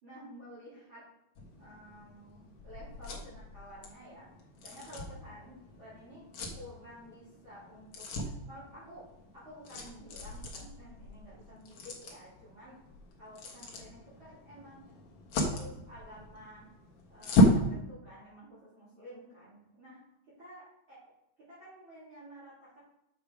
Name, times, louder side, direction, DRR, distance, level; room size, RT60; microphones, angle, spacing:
voice 1, 0.0-1.0 1.6-4.3 4.6-6.2 6.5-9.1 9.3-12.8 13.2-14.8 15.4-16.7 17.1-20.0 20.4-21.1 21.5-22.8, equal, 35° right, -11 dB, 4.1 m, -51 dB
sound 1, 1.3-17.7, left 1 dB, 55° left, 1.7 m, -34 dB
6.7 x 6.5 x 4.9 m, 0.83 s
omnidirectional pair, 4.0 m